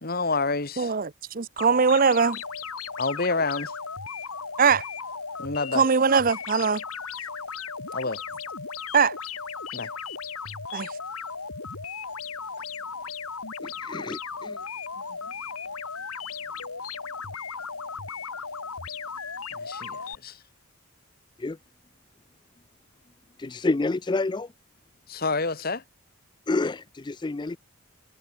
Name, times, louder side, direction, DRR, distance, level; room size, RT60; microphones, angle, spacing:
voice 1, 0.0-1.0 3.0-3.8 5.4-5.9 7.9-8.2 9.7-9.9 15.2-15.3 19.5-20.4 25.1-25.8, left 3 dB, 45° left, 1.7 m, -28 dB
voice 2, 0.8-2.4 4.6-4.8 5.7-6.8 8.9-9.2 10.7-11.0, right 5 dB, 40° right, 0.6 m, -21 dB
sound 1, 1.6-20.1, left 5 dB, 85° left, 5.4 m, -36 dB
voice 3, 13.6-14.6 21.4-21.6 23.4-24.5 26.5-27.6, left 3 dB, 20° left, 0.3 m, -28 dB
head